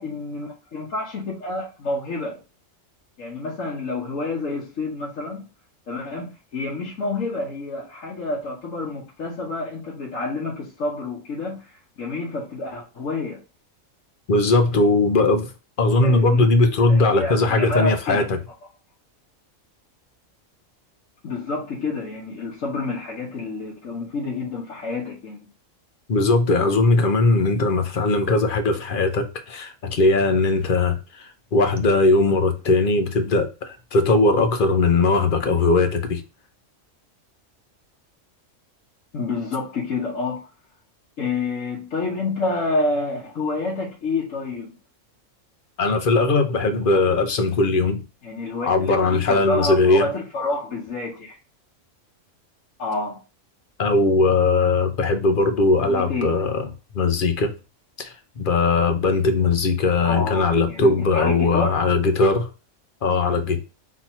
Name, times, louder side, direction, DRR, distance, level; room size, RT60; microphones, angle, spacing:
voice 1, 0.0-2.4 3.2-5.5 5.9-13.4 16.0-16.5 16.9-18.3 21.2-25.5 39.1-40.5 41.2-44.7 48.2-51.4 52.8-53.2 55.8-56.3 60.0-61.8, left 3 dB, 80° left, 1.5 m, -28 dB
voice 2, 14.3-15.5 15.8-18.4 26.1-36.2 45.8-48.0 48.6-50.1 53.8-56.7 56.9-57.5 58.0-62.5 63.0-63.6, left 3 dB, 50° left, 0.8 m, -19 dB
4.0 x 2.8 x 4.1 m
omnidirectional pair, 1.3 m